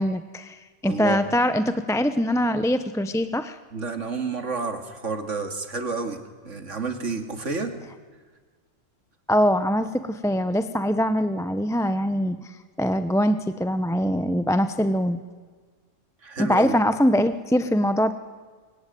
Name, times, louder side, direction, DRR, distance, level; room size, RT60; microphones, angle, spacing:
voice 1, 0.0-3.6 9.3-15.2 16.4-18.1, equal, 5° left, 11 dB, 0.7 m, -23 dB
voice 2, 0.8-1.2 3.7-7.7 16.2-16.8, right 4 dB, 70° right, 7 dB, 2.7 m, -30 dB
25.5 x 23.5 x 9.3 m, 1.5 s
omnidirectional pair, 1.3 m